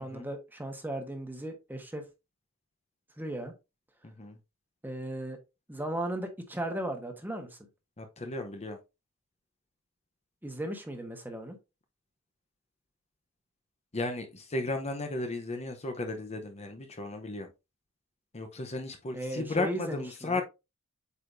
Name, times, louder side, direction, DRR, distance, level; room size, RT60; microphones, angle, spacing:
voice 1, 0.0-2.0 3.2-3.5 4.8-5.4 5.7-7.5 10.4-11.6 19.1-20.4, right 1 dB, 10° right, 1.3 m, -36 dB
voice 2, 4.0-4.4 8.0-8.8 13.9-17.5 18.3-20.4, left 2 dB, 30° left, 0.8 m, -35 dB
8.2 x 4.8 x 2.6 m
head